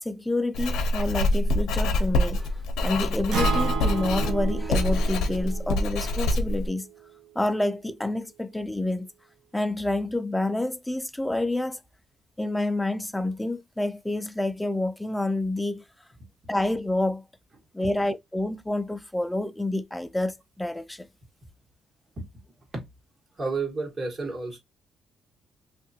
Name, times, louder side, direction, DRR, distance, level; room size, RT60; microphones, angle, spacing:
voice 1, 0.0-6.9 7.4-9.1 9.5-11.8 12.4-15.8 16.5-17.2 17.7-21.1, left 2 dB, 5° left, 0.3 m, -28 dB
Writing, 0.5-6.7, left 1 dB, 85° left, 0.6 m, -25 dB
Acoustic guitar, 3.3-7.5, right 6 dB, 85° right, 0.7 m, -33 dB
voice 2, 23.3-24.6, right 3 dB, 40° right, 1.5 m, -31 dB
2.7 x 2.5 x 2.7 m
cardioid pair, 90°, 0 cm